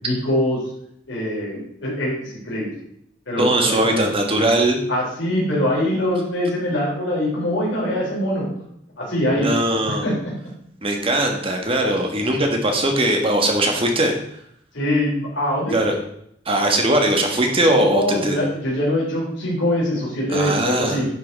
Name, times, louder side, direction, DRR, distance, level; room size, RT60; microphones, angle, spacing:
voice 1, 0.0-0.6 1.1-2.7 3.3-4.0 4.9-8.5 9.0-9.5 9.9-10.1 14.7-15.7 17.7-21.1, left 1 dB, 70° left, -6 dB, 3.7 m, -23 dB
voice 2, 3.4-4.8 9.3-10.0 10.8-14.1 15.7-15.9 16.4-18.4 20.3-21.0, right 1 dB, 30° right, 2 dB, 1.3 m, -20 dB
10.0 x 5.7 x 4.1 m, 0.72 s
head